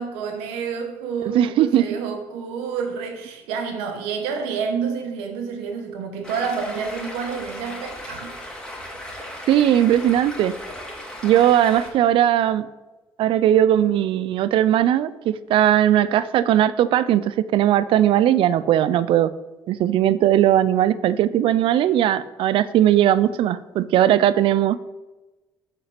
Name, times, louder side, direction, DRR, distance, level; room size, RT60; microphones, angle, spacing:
voice 1, 0.0-8.3, right 6 dB, 90° right, 5 dB, 1.2 m, -29 dB
voice 2, 1.3-1.9 9.5-10.5 11.2-12.7 13.2-19.3 19.7-24.8, right 11 dB, 70° right, 16 dB, 0.4 m, -18 dB
Stream, 6.2-11.9, left 1 dB, 10° left, 2.6 m, -36 dB
6.0 x 5.8 x 5.8 m, 1.1 s
supercardioid pair, 75°, 9 cm